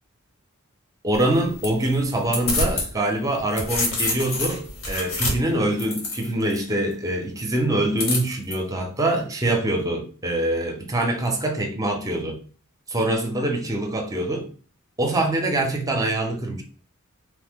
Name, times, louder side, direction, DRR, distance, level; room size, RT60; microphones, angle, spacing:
voice 1, 1.0-12.4 12.9-14.5 15.0-16.6, right 1 dB, 15° right, 0.6 m, -24 dB
sound 1, 1.1-2.9 3.3-6.6 8.0-8.5, left 2 dB, 70° left, 1.0 m, -27 dB
3.1 x 2.1 x 3.5 m
head